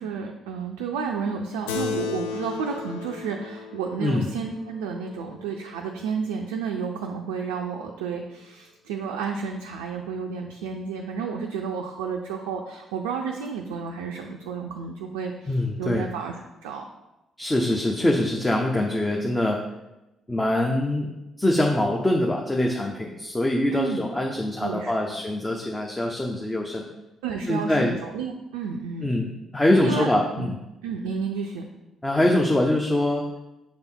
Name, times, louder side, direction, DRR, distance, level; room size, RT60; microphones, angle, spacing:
voice 1, 0.0-16.8 23.7-24.0 24.6-24.9 27.2-29.1 29.7-30.1 30.4-30.5 30.8-31.7, right 6 dB, 75° right, 1 dB, 0.4 m, -31 dB
Keyboard (musical), 1.7-6.5, left 6 dB, 75° left, 0.3 m, -35 dB
voice 2, 15.5-16.1 17.4-19.6 20.3-21.1 21.4-26.9 27.5-27.9 29.0-30.6 32.0-33.2, left 1 dB, 20° left, 0 dB, 0.7 m, -23 dB
6.3 x 3.5 x 4.3 m, 0.96 s
figure-of-eight pair, 40°, 0 cm